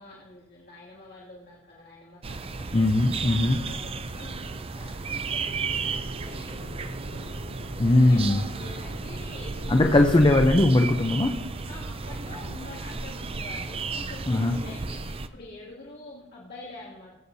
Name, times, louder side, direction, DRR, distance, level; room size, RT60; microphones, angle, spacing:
voice 1, 0.0-2.7 3.1-7.3 7.9-10.1 11.7-17.2, left 2 dB, 55° left, -5 dB, 2.4 m, -46 dB
sound 1, 2.2-15.3, right 4 dB, 30° right, 0.5 m, -34 dB
voice 2, 2.7-3.6 7.8-8.4 9.7-11.3 14.3-14.5, left 2 dB, 25° left, 4 dB, 0.6 m, -19 dB
sound 2, 5.2-10.4, right 1 dB, 80° right, 2.2 m, -40 dB
20.5 x 8.5 x 2.7 m, 1.0 s
head